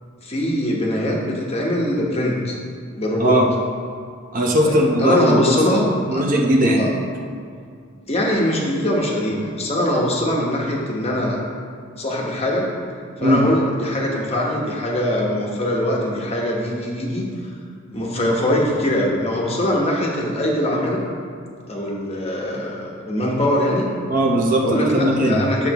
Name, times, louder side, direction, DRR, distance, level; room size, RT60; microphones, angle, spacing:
voice 1, 0.2-2.6 2.9-3.4 4.6-5.8 6.1-6.2 6.8-6.9 8.1-11.4 12.0-12.7 13.2-17.2 17.9-21.0 21.7-23.9 24.6-25.7, left 1 dB, 30° left, -2 dB, 1.2 m, -22 dB
voice 2, 4.3-5.8 6.1-6.8 13.2-13.4 24.1-25.4, right 1 dB, 40° right, 0 dB, 0.9 m, -18 dB
10.0 x 6.9 x 3.0 m, 2.2 s
head